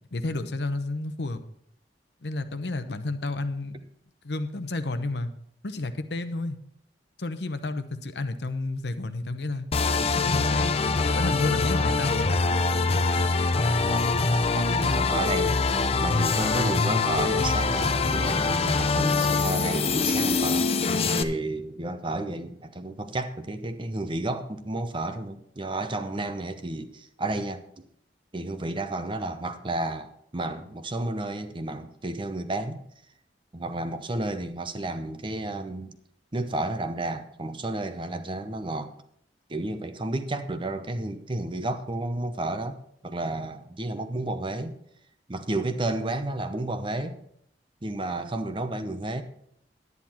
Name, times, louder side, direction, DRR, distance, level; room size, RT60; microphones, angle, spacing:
voice 1, 0.1-1.4 2.2-3.8 4.2-5.3 5.6-6.6 7.2-9.6 10.1-10.8 11.0-12.3, left 2 dB, 70° left, 10 dB, 0.9 m, -31 dB
sound 1, 9.7-21.2, left 4 dB, 35° left, 0.6 m, -24 dB
voice 2, 14.5-15.6 16.0-20.7 21.1-27.8 28.3-32.8 33.5-36.0 36.3-38.9 39.5-44.7 45.3-47.2 47.8-49.2, right 2 dB, 30° right, 9 dB, 0.8 m, -31 dB
11.0 x 9.7 x 4.3 m, 0.69 s
head